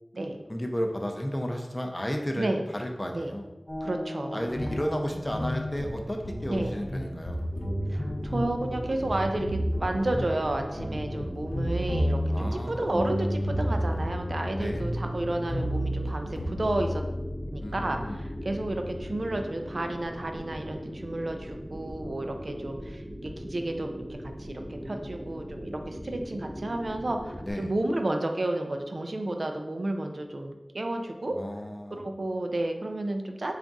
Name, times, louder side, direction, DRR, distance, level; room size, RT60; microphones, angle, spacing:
voice 1, 0.5-3.5 4.3-7.4 12.3-12.9 14.6-14.9 17.6-18.2 27.4-27.7 31.3-32.0, equal, 20° left, 3 dB, 0.5 m, -33 dB
sound 1, 3.7-19.2, equal, 40° left, 0.8 m, -32 dB
voice 2, 3.8-4.8 6.5-6.8 7.9-17.0 17.5-31.4 31.9-33.5, right 1 dB, 65° right, 4 dB, 0.4 m, -31 dB
sound 2, 7.5-27.5, equal, 20° right, 0.8 m, -40 dB
3.5 x 2.4 x 3.9 m, 1.0 s
wide cardioid pair, 65°, 0 cm